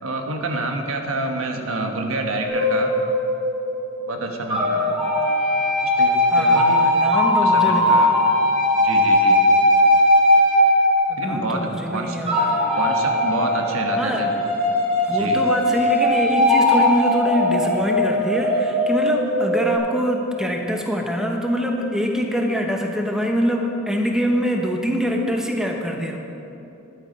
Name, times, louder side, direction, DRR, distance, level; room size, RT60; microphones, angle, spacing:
voice 1, 0.0-3.0 4.1-4.9 5.8-7.1 7.4-8.1 8.8-9.4 11.2-12.2 12.7-14.5 15.1-15.4, right 2 dB, 85° right, 3 dB, 1.3 m, -28 dB
sound 1, 2.4-4.0 4.5-11.6 12.3-19.8, left 1 dB, 30° right, 3.4 m, -19 dB
voice 2, 4.7-5.6 6.3-8.1 11.1-12.9 14.0-14.3 15.0-26.2, equal, 5° right, 1 dB, 1.0 m, -24 dB
12.5 x 11.0 x 5.3 m, 2.8 s
head